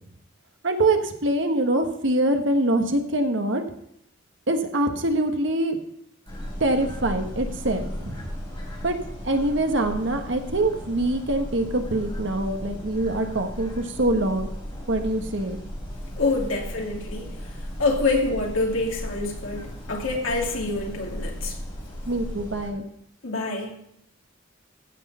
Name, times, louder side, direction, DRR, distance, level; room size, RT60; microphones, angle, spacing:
voice 1, 0.6-3.6 4.5-5.8 6.6-8.3 8.8-9.0 9.2-14.5 14.9-15.6 22.1-22.8, right 1 dB, 65° right, 5 dB, 1.4 m, -24 dB
sound 1, 6.3-22.7, equal, 25° left, 3.8 m, -36 dB
voice 2, 16.2-17.5 17.8-21.6 23.2-23.8, left 3 dB, 75° left, 0 dB, 2.7 m, -26 dB
15.5 x 6.4 x 5.6 m, 0.72 s
head